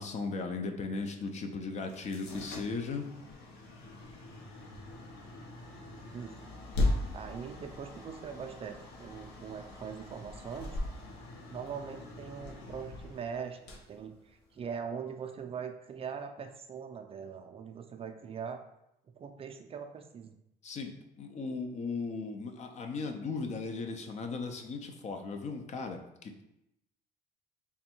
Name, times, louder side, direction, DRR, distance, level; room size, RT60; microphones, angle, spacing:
voice 1, 0.0-3.1 20.6-26.4, left 4 dB, 40° left, 5 dB, 0.5 m, -37 dB
sound 1, 1.8-14.8, left 2 dB, 90° left, 0.8 m, -39 dB
voice 2, 6.1-6.5 7.1-10.8 11.5-13.6 13.9-18.6 19.2-20.4, right 6 dB, 35° right, 5 dB, 0.4 m, -41 dB
3.4 x 2.2 x 4.3 m, 0.83 s
cardioid pair, 110°, 17 cm